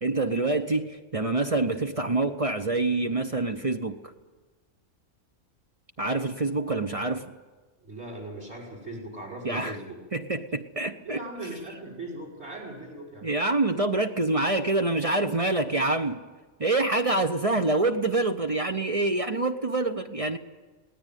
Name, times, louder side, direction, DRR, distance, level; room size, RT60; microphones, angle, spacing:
voice 1, 0.0-4.0 6.0-7.3 9.4-9.8 10.1-11.2 13.2-16.2 16.6-20.4, right 2 dB, 30° right, 7 dB, 0.7 m, -26 dB
voice 2, 7.8-10.0 11.0-13.3, right 2 dB, 50° right, 0 dB, 6.1 m, -39 dB
19.5 x 18.5 x 9.2 m, 1.3 s
omnidirectional pair, 1.5 m